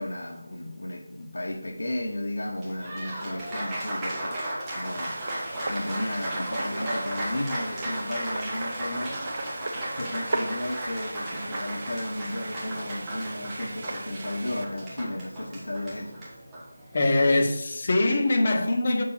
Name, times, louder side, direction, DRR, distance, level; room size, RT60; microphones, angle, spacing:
voice 1, 0.0-4.3 4.7-9.3 9.7-16.2, left 1 dB, 80° left, 1.1 m, -34 dB
Applause, 2.6-17.2, right 1 dB, 10° right, 1.3 m, -35 dB
sound 1, 4.8-14.7, right 2 dB, 40° right, 0.8 m, -39 dB
voice 2, 16.9-19.0, left 2 dB, 30° left, 1.1 m, -22 dB
6.8 x 5.8 x 5.7 m
figure-of-eight pair, 175°, 0 cm